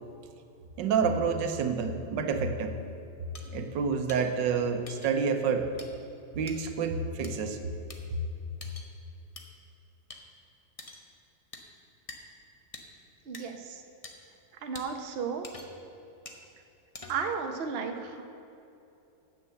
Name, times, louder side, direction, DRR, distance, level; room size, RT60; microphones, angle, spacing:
voice 1, 0.8-2.8 3.5-5.7 6.3-7.6, right 5 dB, 90° right, 7 dB, 1.5 m, -28 dB
sound 1, 3.3-3.4 4.1-4.2 4.9-5.1 5.8-5.9 6.5-6.6 7.2-7.3 7.9-8.0 8.6-8.9 9.4-9.5 10.1-10.2 10.8-11.0 11.5-11.6 12.1-12.2 12.7-12.8 13.3-13.4 14.0-14.1 14.7-14.9 15.4-15.8 16.3-16.4 16.9-17.3, left 3 dB, 30° left, 0.7 m, -45 dB
voice 2, 13.3-13.8 14.6-15.5 17.1-18.2, right 6 dB, 45° right, 5 dB, 0.9 m, -34 dB
9.8 x 7.7 x 7.6 m, 2.8 s
omnidirectional pair, 1.9 m